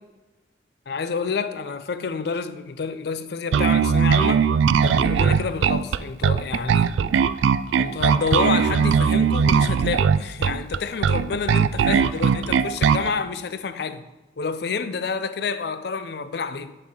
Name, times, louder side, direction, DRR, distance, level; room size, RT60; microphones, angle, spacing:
voice 1, 0.9-4.5 4.8-7.0 7.8-14.0 14.4-16.8, left 5 dB, 60° left, 0.4 m, -28 dB
Bass guitar, 3.5-13.1, right 7 dB, 80° right, 0.3 m, -19 dB
10.5 x 4.5 x 3.8 m
head